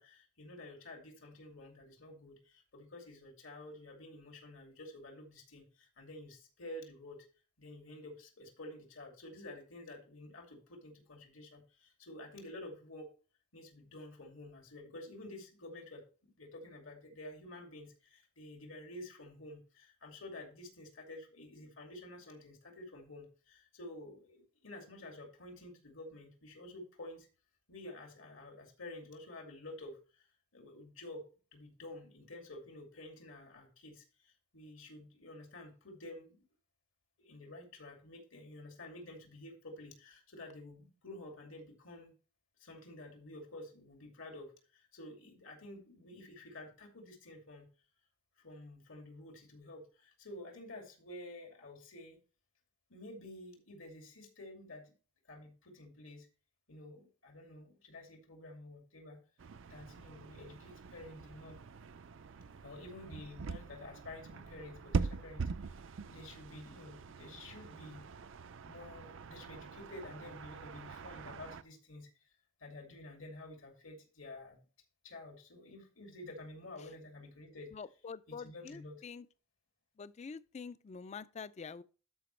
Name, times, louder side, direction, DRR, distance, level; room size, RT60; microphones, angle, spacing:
voice 1, 0.0-7.3 7.6-13.1 13.5-27.3 27.7-30.3 30.5-36.4 37.2-42.1 42.6-47.7 48.4-52.2 52.9-54.9 55.2-56.3 56.7-59.2 59.7-61.6 62.6-65.8 66.1-68.0 68.6-72.1 72.6-74.6 75.0-77.7 78.3-79.0, left 1 dB, 80° left, 2.5 m, -50 dB
sound 1, 59.4-71.6, right 4 dB, 65° right, 0.5 m, -43 dB
voice 2, 77.7-79.3 80.0-81.8, left 5 dB, 35° left, 0.4 m, -46 dB
12.5 x 5.0 x 3.2 m
head